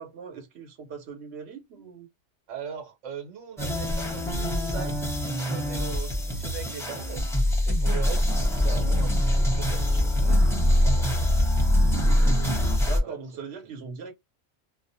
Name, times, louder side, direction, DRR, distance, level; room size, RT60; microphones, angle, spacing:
voice 1, 0.0-2.1 12.8-14.1, right 5 dB, 65° right, 1.0 m, -40 dB
voice 2, 2.5-10.4 10.7-11.3 11.9-12.1 13.0-13.2 13.6-13.7, right 7 dB, 90° right, 1.2 m, -40 dB
sound 1, 3.6-13.0, left 1 dB, 5° left, 0.6 m, -23 dB
2.4 x 2.1 x 2.6 m
omnidirectional pair, 1.2 m